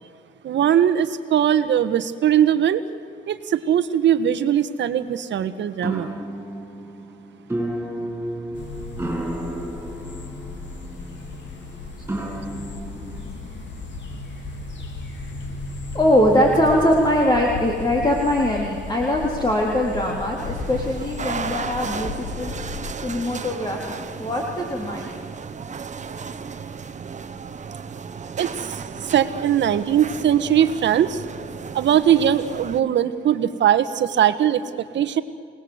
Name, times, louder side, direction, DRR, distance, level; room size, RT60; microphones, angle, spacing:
voice 1, 0.4-2.8 3.3-6.1 28.4-31.2 31.7-34.6 34.9-35.2, right 10 dB, 65° right, 11 dB, 1.5 m, -20 dB
sound 1, 5.8-13.3, right 1 dB, 10° right, 7.1 m, -32 dB
sound 2, 8.5-22.8, left 3 dB, 65° left, 3.9 m, -35 dB
voice 2, 12.7-13.1 15.9-25.1, left 1 dB, 20° left, -1 dB, 3.7 m, -22 dB
sound 3, 20.4-32.8, right 5 dB, 35° right, 1.6 m, -34 dB
28.5 x 19.5 x 8.2 m, 2.3 s
cardioid pair, 90°, 20 cm